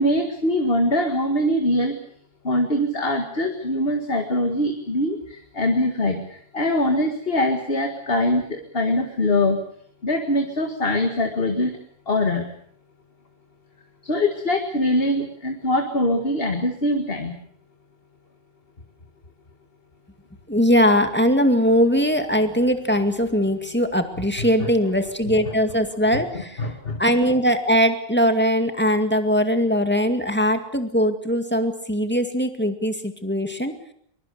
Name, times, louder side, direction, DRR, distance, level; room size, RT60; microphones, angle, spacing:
voice 1, 0.0-2.0 2.4-9.6 10.0-11.8 12.1-12.5 14.0-17.4 24.6-24.7 26.1-26.2 26.6-27.0, left 1 dB, 65° left, 5 dB, 2.3 m, -23 dB
voice 2, 20.5-33.7, equal, 10° left, 7 dB, 2.2 m, -21 dB
23.5 x 22.5 x 7.0 m, 0.64 s
omnidirectional pair, 1.1 m